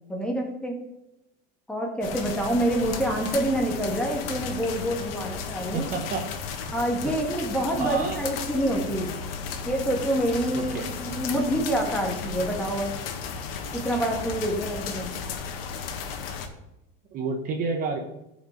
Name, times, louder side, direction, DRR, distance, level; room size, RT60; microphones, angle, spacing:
voice 1, 0.1-0.8 1.7-5.9 6.7-9.1 9.6-12.9 13.7-15.1, right 1 dB, 5° left, 1 dB, 1.6 m, -27 dB
sound 1, 2.0-16.5, left 6 dB, 75° left, 1.6 m, -34 dB
voice 2, 5.7-6.3 7.7-8.2 10.5-10.9 17.1-18.0, right 4 dB, 30° right, 3 dB, 1.0 m, -29 dB
14.5 x 5.3 x 5.1 m, 0.92 s
supercardioid pair, 165°, 29 cm